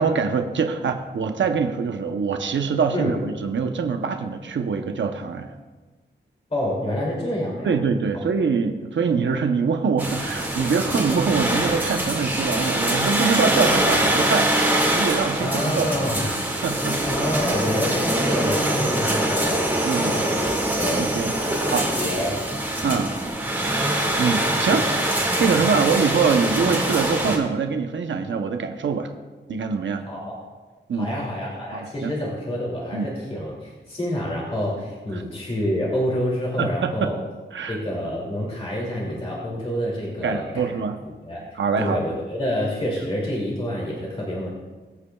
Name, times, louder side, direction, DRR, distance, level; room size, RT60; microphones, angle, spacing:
voice 1, 0.0-5.5 7.6-15.9 16.2-16.4 16.6-17.0 19.8-20.1 20.9-21.3 21.7-21.8 22.8-23.1 24.2-24.9 25.4-29.1 29.5-30.0 30.9-31.3 31.7-32.1 32.9-33.1 35.1-35.2 36.6-37.1 37.5-37.8 40.2-41.0 41.6-42.0, right 5 dB, 85° right, 6 dB, 0.8 m, -24 dB
voice 2, 6.5-7.7 15.4-16.3 17.0-19.6 20.0-20.5 20.7-21.0 21.4-21.7 22.0-22.4 30.1-30.4 31.0-37.2 37.7-40.8 41.2-41.4 41.8-44.5, left 1 dB, 30° left, -4 dB, 2.5 m, -27 dB
sound 1, 10.0-27.4, right 1 dB, 10° right, 2.0 m, -23 dB
22.5 x 8.4 x 2.3 m, 1.3 s
wide cardioid pair, 145°, 19 cm